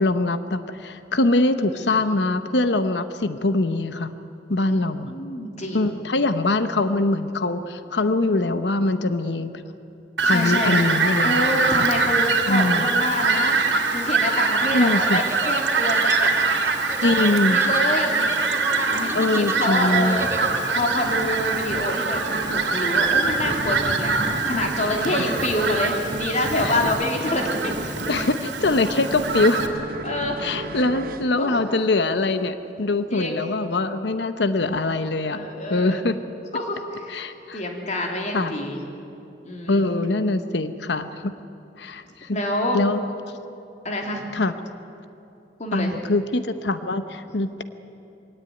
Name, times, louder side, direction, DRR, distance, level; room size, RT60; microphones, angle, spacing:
voice 1, 0.0-4.1 4.5-5.1 5.7-9.5 10.2-11.3 12.5-12.9 14.7-15.2 17.0-17.6 19.1-20.2 25.2-25.3 26.5-26.8 28.1-29.6 30.4-35.4 35.7-36.2 37.1-37.6 38.3-38.5 39.7-41.3 41.8-42.4 42.7-43.0 44.3-44.5 45.7-47.6, left 2 dB, 70° left, 11 dB, 0.9 m, -23 dB
voice 2, 5.0-5.9 10.2-10.8 11.2-16.3 17.2-18.3 18.9-20.3 20.7-22.2 22.5-24.2 24.4-27.7 30.0-30.7 31.3-31.6 33.1-33.4 35.3-36.2 36.5-38.8 39.4-39.8 42.3-42.8 43.8-44.3 45.6-46.0, left 1 dB, 45° left, 2 dB, 3.2 m, -27 dB
Fowl, 10.2-29.7, right 4 dB, 85° right, 2.5 m, -23 dB
sound 1, 14.8-20.9, right 2 dB, 15° right, 1.1 m, -34 dB
sound 2, 21.0-32.3, right 2 dB, 55° right, 1.1 m, -35 dB
23.0 x 17.5 x 9.4 m, 2.8 s
head